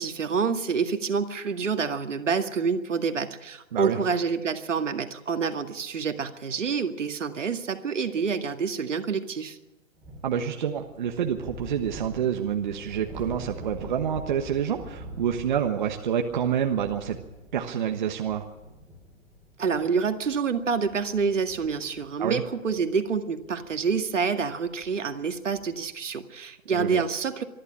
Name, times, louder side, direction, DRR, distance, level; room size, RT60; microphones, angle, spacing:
voice 1, 0.0-9.6 19.6-27.4, right 5 dB, 65° right, 6 dB, 2.1 m, -27 dB
sound 1, 10.0-25.8, equal, 5° right, 3.0 m, -46 dB
voice 2, 10.2-17.2 17.5-18.4 22.2-22.4 26.7-27.0, right 8 dB, 35° right, 4 dB, 1.3 m, -27 dB
25.5 x 11.5 x 10.0 m, 0.98 s
hypercardioid pair, 160°, 39 cm